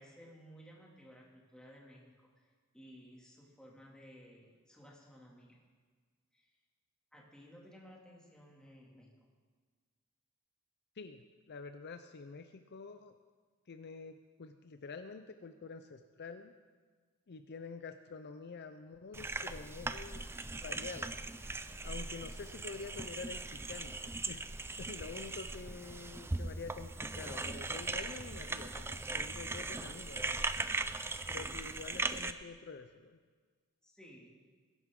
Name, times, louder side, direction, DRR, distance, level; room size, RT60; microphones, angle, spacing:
voice 1, 0.0-5.6 6.3-6.5 7.1-9.2 33.8-34.4, equal, 5° left, -3 dB, 2.4 m, -57 dB
voice 2, 11.0-13.1 13.7-16.5 17.3-20.2 20.5-21.2 21.8-24.4 24.8-30.5 31.3-33.2, left 4 dB, 50° left, 8 dB, 0.5 m, -47 dB
sound 1, 19.1-32.3, right 3 dB, 10° right, 0.4 m, -39 dB
20.5 x 11.0 x 3.7 m, 1.5 s
head